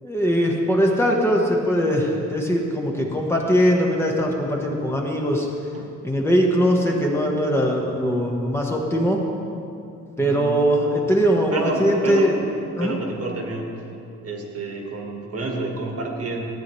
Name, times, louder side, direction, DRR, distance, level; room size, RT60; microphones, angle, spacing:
voice 1, 0.0-5.5 6.0-9.3 10.2-12.4 12.8-12.9, equal, 10° left, -1 dB, 1.2 m, -21 dB
voice 2, 10.2-10.6 11.0-11.1 11.5-12.3 12.8-13.7 14.2-16.4, right 2 dB, 50° right, 0 dB, 1.8 m, -29 dB
14.5 x 8.4 x 3.1 m, 2.6 s
cardioid pair, 90°, 30 cm